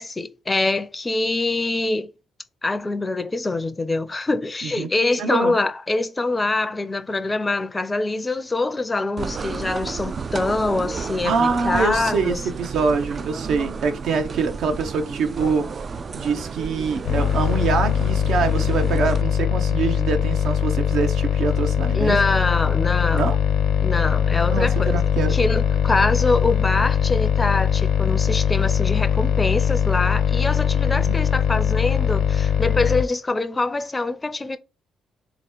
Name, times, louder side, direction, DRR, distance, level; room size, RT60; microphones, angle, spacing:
voice 1, 0.0-2.1 2.6-12.4 21.9-23.3 23.8-25.0 25.3-34.6, left 2 dB, 20° left, 0.5 m, -24 dB
voice 2, 5.2-5.5 11.2-15.7 16.1-22.2 23.1-23.4 24.5-25.4 30.8-31.2, right 5 dB, 75° right, 0.8 m, -24 dB
sound 1, 9.2-19.2, right 5 dB, 40° right, 0.3 m, -32 dB
sound 2, 17.0-33.0, left 8 dB, 85° left, 0.9 m, -21 dB
3.6 x 3.0 x 4.3 m
cardioid pair, 90°, 0 cm